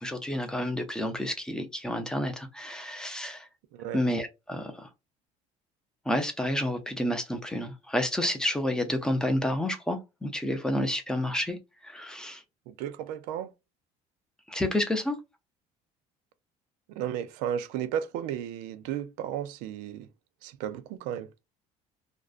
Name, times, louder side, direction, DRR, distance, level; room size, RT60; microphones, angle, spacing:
voice 1, 0.0-3.5 3.9-4.9 6.1-11.6 11.8-12.4 14.5-15.2, left 1 dB, 5° left, 0.4 m, -30 dB
voice 2, 12.7-13.5 16.9-20.1 20.4-21.3, right 10 dB, 90° right, 0.4 m, -34 dB
2.4 x 2.1 x 2.3 m
cardioid pair, 155°, 14 cm